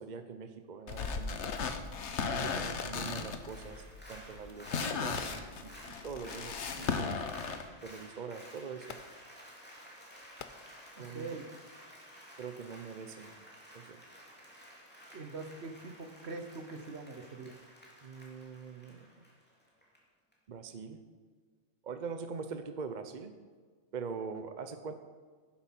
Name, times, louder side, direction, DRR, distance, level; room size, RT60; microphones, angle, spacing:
voice 1, 0.0-1.6 2.3-5.7 6.0-7.2 7.8-9.0 11.0-11.3 12.4-13.3 13.7-14.0 18.0-19.2 20.5-21.0 21.8-23.3 23.9-24.9, right 5 dB, 45° right, 8 dB, 0.7 m, -43 dB
sound 1, 0.9-7.6, left 5 dB, 70° left, 1.1 m, -36 dB
Fireworks, 1.4-1.9 2.8-3.3 4.2-4.3 5.2-7.6 8.9-9.4 10.2-11.1 11.8-11.9, left 7 dB, 55° left, 0.7 m, -51 dB
Applause, 3.4-20.0 20.3-20.4, equal, 10° left, 2.4 m, -53 dB
voice 2, 10.9-11.5 15.1-17.6, right 3 dB, 60° right, 6 dB, 1.3 m, -43 dB
10.5 x 7.8 x 5.8 m, 1.5 s
omnidirectional pair, 1.3 m